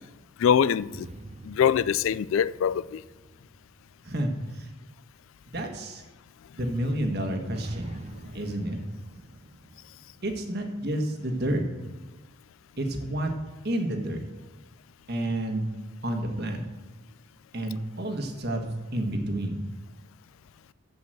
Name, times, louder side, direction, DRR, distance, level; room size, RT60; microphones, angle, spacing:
voice 1, 0.4-1.1 1.5-3.0, left 8 dB, 65° left, 0.3 m, -23 dB
sound 1, 0.9-4.6 7.5-11.3, right 2 dB, 30° right, 0.6 m, -47 dB
voice 2, 4.0-4.7 5.5-6.0 6.5-8.0 8.3-8.8 10.2-11.7 12.8-13.3 13.6-14.2 15.1-15.7 16.0-16.6 17.5-18.7 18.9-19.6, right 1 dB, 45° right, 1.6 m, -30 dB
14.0 x 5.2 x 7.8 m
head